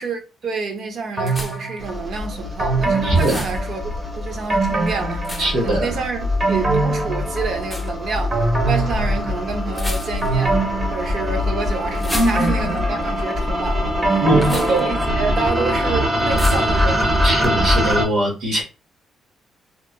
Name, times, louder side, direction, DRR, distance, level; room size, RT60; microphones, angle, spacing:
voice 1, 0.0-3.9 4.2-10.6 10.9-17.1, right 4 dB, 60° right, 0.6 m, -28 dB
sound 1, 1.2-2.0 2.6-4.0 4.5-5.8 6.2-7.8 8.3-9.6 10.2-11.7 12.1-15.4 15.7-15.8, right 3 dB, 35° right, 1.3 m, -23 dB
sound 2, 1.3-1.8 3.1-3.6 5.2-5.7 7.6-7.9 9.7-10.4 11.9-12.8 14.4-14.8 16.4-16.8, left 1 dB, 10° left, 0.6 m, -31 dB
sound 3, 1.8-18.0, left 1 dB, 20° right, 0.9 m, -23 dB
voice 2, 3.0-3.4 5.4-5.9 14.2-14.5 17.2-18.6, right 1 dB, 80° right, 1.2 m, -20 dB
2.9 x 2.3 x 2.2 m
cardioid pair, 90°, 0 cm